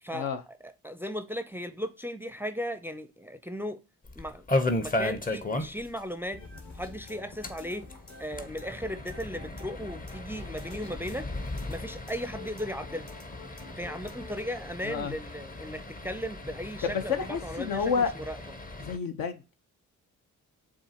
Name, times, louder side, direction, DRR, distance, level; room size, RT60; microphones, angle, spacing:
voice 1, 0.0-3.8 4.2-4.5 4.8-6.4 6.7-7.9 8.2-11.3 11.7-13.1 13.8-18.4, equal, 5° right, 0.5 m, -36 dB
sound 1, 4.0-6.0 6.3-6.4 6.7-6.8 7.3-19.0, left 2 dB, 25° left, 0.8 m, -35 dB
sound 2, 6.3-14.3, left 3 dB, 45° left, 1.5 m, -48 dB
voice 2, 16.8-18.1 18.8-19.6, left 6 dB, 65° left, 0.8 m, -30 dB
7.1 x 2.5 x 2.8 m
hypercardioid pair, 45°, 37 cm